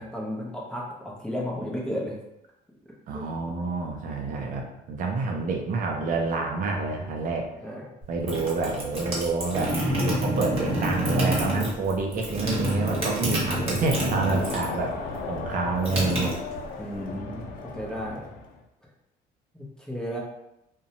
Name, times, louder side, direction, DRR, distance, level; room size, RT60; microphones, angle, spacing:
voice 1, 0.0-2.2 3.1-3.2 7.6-7.9 14.4-14.5 16.8-17.3 17.6-18.3 19.5-20.2, equal, 5° left, -4 dB, 0.6 m, -33 dB
voice 2, 3.1-7.5 8.1-16.3 17.3-17.5, right 3 dB, 55° right, 1 dB, 0.4 m, -28 dB
sound 1, 8.0-14.8 15.1-16.9, right 1 dB, 35° right, 1.0 m, -28 dB
Crowd, 13.5-18.6, left 4 dB, 55° left, 0.5 m, -36 dB
2.6 x 2.1 x 2.7 m, 0.85 s
cardioid pair, 110°, 17 cm